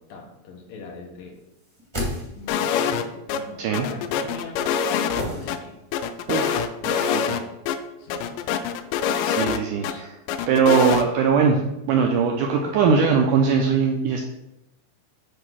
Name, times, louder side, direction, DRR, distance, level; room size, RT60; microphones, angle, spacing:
voice 1, 0.0-1.4 2.4-4.6 4.9-5.8 8.0-8.4 9.8-10.1, left 4 dB, 70° left, 0 dB, 2.5 m, -41 dB
sound 1, 1.6-2.8 5.2-6.1 6.3-6.4, equal, 25° right, 0.5 m, -32 dB
sound 2, 2.5-3.0 3.3-3.4 3.7-5.6 5.9-7.4 7.7-7.8 8.1-9.9 10.3-11.0, left 8 dB, 90° left, 1.9 m, -25 dB
voice 2, 6.3-7.4 9.2-10.1 10.5-11.6 11.9-14.2, right 6 dB, 85° right, 1 dB, 1.8 m, -21 dB
8.0 x 2.8 x 6.1 m, 0.90 s
omnidirectional pair, 4.4 m